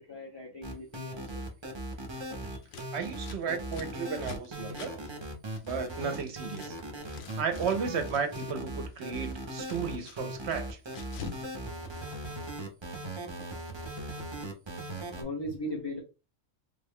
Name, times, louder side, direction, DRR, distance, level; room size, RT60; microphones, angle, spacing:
voice 1, 0.0-1.4 2.5-2.6 15.2-16.0, left 1 dB, 30° left, 0.5 m, -38 dB
sound 1, 0.6-15.2, right 1 dB, 30° right, 0.5 m, -39 dB
Scissors, 2.6-6.7 7.0-8.6 8.9-11.5 11.7-12.6, left 6 dB, 60° left, 0.8 m, -47 dB
voice 2, 2.9-5.0 5.6-6.7 7.4-10.8, right 6 dB, 65° right, 0.8 m, -34 dB
3.6 x 2.2 x 3.5 m
omnidirectional pair, 1.3 m